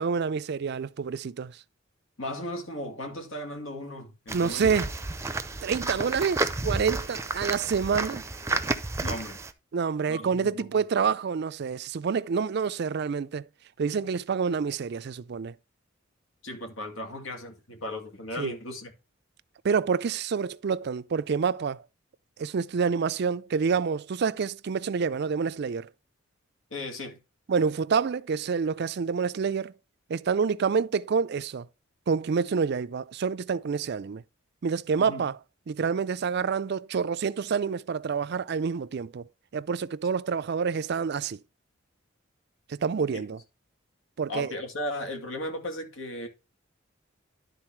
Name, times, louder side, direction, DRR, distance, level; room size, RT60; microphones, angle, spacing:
voice 1, 0.0-1.6 4.3-4.9 5.6-8.2 9.7-13.5 13.8-15.5 18.4-18.5 19.6-21.8 22.4-25.9 27.5-29.7 30.1-31.7 32.1-34.2 34.6-35.4 35.7-39.2 39.5-41.4 42.7-43.4 44.2-44.5, right 6 dB, 55° right, 0.4 m, -27 dB
voice 2, 2.2-4.7 9.0-9.4 10.1-10.7 16.4-18.9 26.7-27.2 35.0-35.3 43.1-43.2 44.3-46.3, left 1 dB, 80° left, 2.2 m, -36 dB
sound 1, 4.3-9.5, right 3 dB, 15° right, 0.6 m, -31 dB
11.5 x 4.0 x 4.4 m
head